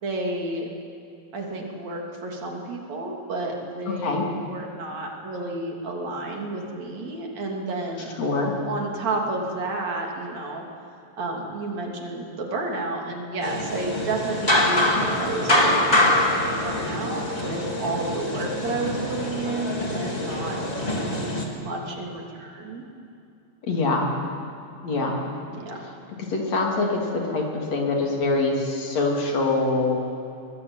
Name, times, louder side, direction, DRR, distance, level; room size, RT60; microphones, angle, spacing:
voice 1, 0.0-0.7 1.3-8.1 8.7-10.7 11.2-16.2 16.5-22.8 25.5-25.8, right 2 dB, 65° right, 0 dB, 4.2 m, -31 dB
voice 2, 8.2-8.5 23.7-24.0 24.8-25.2 26.3-30.0, left 3 dB, 60° left, 0 dB, 4.2 m, -24 dB
sound 1, 13.4-21.4, left 1 dB, 15° left, 2.1 m, -24 dB
23.0 x 19.0 x 9.1 m, 2.7 s
omnidirectional pair, 3.4 m